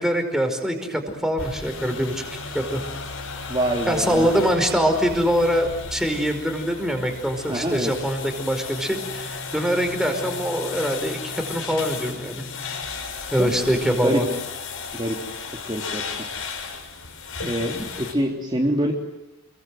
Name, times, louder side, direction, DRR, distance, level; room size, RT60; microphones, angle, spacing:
voice 1, 0.0-2.2 2.5-2.8 3.9-12.4 13.3-14.3, equal, ahead, 5 dB, 5.1 m, -23 dB
sound 1, 1.4-18.1, left 4 dB, 75° left, 6.8 m, -34 dB
voice 2, 3.5-4.3 7.5-7.9 13.4-13.5 14.0-14.2 14.9-15.2 15.7-16.0 17.4-18.9, right 1 dB, 20° right, -1 dB, 3.1 m, -25 dB
30.0 x 23.5 x 7.9 m, 0.94 s
head